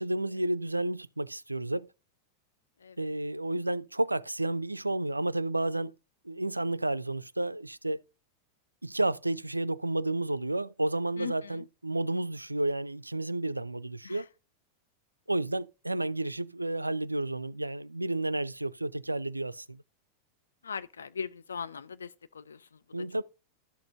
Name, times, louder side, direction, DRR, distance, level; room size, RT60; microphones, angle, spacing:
voice 1, 0.0-1.9 3.0-5.9 6.2-8.0 8.8-14.3 15.3-19.8 22.9-23.2, right 1 dB, 85° right, 0.3 m, -31 dB
voice 2, 2.8-3.1 11.2-11.6 14.0-14.2 20.6-23.2, left 6 dB, 70° left, 0.6 m, -40 dB
12.5 x 6.5 x 2.6 m
figure-of-eight pair, 90°, 0 cm